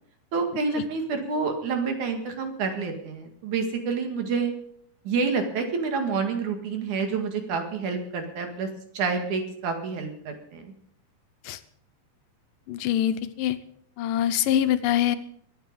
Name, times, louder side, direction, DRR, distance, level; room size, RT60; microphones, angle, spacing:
voice 1, 0.3-4.5 5.1-8.7 8.9-10.7, right 4 dB, 65° right, 5 dB, 3.4 m, -28 dB
voice 2, 12.7-13.6 14.0-15.2, left 11 dB, 90° left, 11 dB, 2.5 m, -24 dB
23.0 x 9.2 x 5.4 m, 0.66 s
omnidirectional pair, 3.8 m